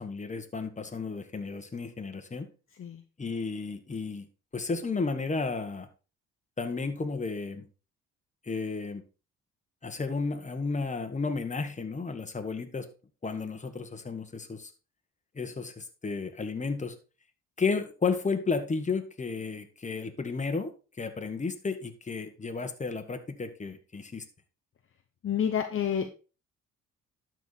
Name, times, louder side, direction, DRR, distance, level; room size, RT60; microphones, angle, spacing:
voice 1, 0.0-2.5 3.2-4.3 4.5-5.9 6.6-7.7 8.5-9.0 9.8-12.9 13.2-14.7 15.3-16.9 17.6-20.7 21.0-24.2, left 4 dB, 25° left, 7 dB, 1.5 m, -33 dB
voice 2, 25.2-26.1, left 8 dB, 45° left, 5 dB, 0.9 m, -28 dB
12.0 x 4.6 x 4.1 m, 0.33 s
cardioid pair, 90°, 30 cm